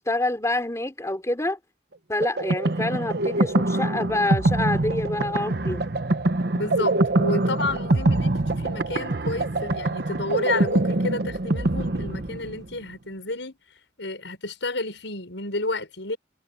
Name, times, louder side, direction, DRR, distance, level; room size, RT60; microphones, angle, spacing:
voice 1, 0.0-1.6 2.1-5.8, left 2 dB, 15° left, 3.1 m, -27 dB
sound 1, 2.2-12.7, right 2 dB, 60° right, 1.0 m, -24 dB
voice 2, 6.5-13.6 14.0-16.2, left 2 dB, 85° left, 6.2 m, -31 dB
head